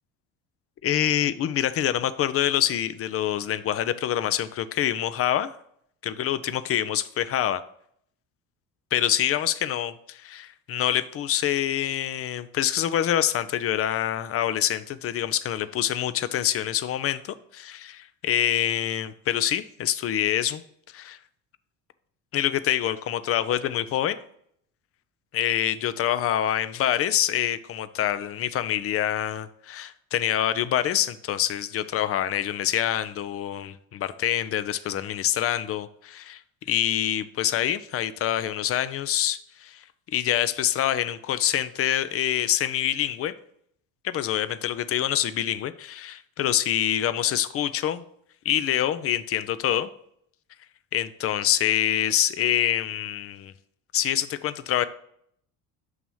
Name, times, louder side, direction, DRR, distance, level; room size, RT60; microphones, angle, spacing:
voice 1, 0.8-5.5 6.0-7.6 8.9-20.6 20.9-21.2 22.3-24.2 25.3-36.4 36.7-39.8 40.1-43.3 44.0-48.0 48.5-49.9 50.9-53.5 53.9-54.9, left 11 dB, 35° left, 14 dB, 0.4 m, -26 dB
6.2 x 2.9 x 5.3 m, 0.69 s
supercardioid pair, 75°, 40 cm